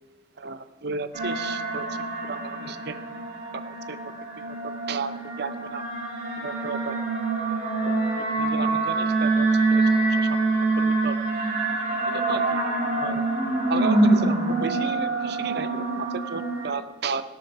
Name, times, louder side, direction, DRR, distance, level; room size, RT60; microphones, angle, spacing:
voice 1, 0.4-1.8 2.2-3.0 3.9-4.0 4.4-5.8 6.4-6.9 7.9-10.3 10.5-11.1 12.1-12.6 12.9-13.3 13.7-17.2, right 4 dB, 60° right, 11 dB, 0.7 m, -34 dB
sound 1, 1.1-16.7, right 3 dB, 45° right, 3.6 m, -25 dB
17.5 x 7.7 x 6.0 m, 1.2 s
head